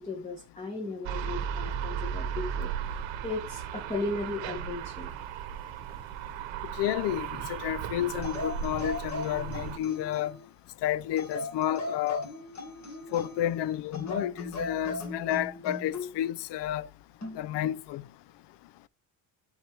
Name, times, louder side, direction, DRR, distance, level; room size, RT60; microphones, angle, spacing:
voice 1, 0.0-5.1 7.4-7.6, left 2 dB, 15° left, 1.5 m, -36 dB
sound 1, 1.1-9.8, right 8 dB, 75° right, 1.0 m, -36 dB
voice 2, 6.8-10.4 10.8-12.2 13.1-16.9 17.3-18.0, left 12 dB, 65° left, 0.6 m, -31 dB
sound 2, 8.2-10.5 11.2-13.5 13.9-16.1 17.2-17.5, left 2 dB, 35° left, 2.1 m, -38 dB
11.5 x 4.8 x 3.3 m
cardioid pair, 125°, 46 cm